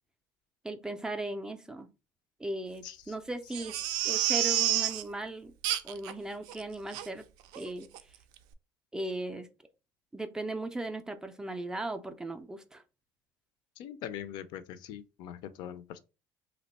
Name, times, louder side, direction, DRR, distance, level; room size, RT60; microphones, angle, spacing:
voice 1, 0.6-1.9 2.4-3.8 4.0-5.5 5.8-7.2 7.6-7.9 8.9-9.5 10.1-12.8, right 1 dB, 10° right, 0.3 m, -37 dB
Crying sobbing, 3.5-5.0 5.6-6.1 6.5-6.6 6.9-7.1 7.5-7.7 7.9-8.0, right 12 dB, 80° right, 0.4 m, -29 dB
voice 2, 13.8-16.0, left 10 dB, 65° left, 0.4 m, -42 dB
2.9 x 2.1 x 4.0 m
cardioid pair, 150°, 8 cm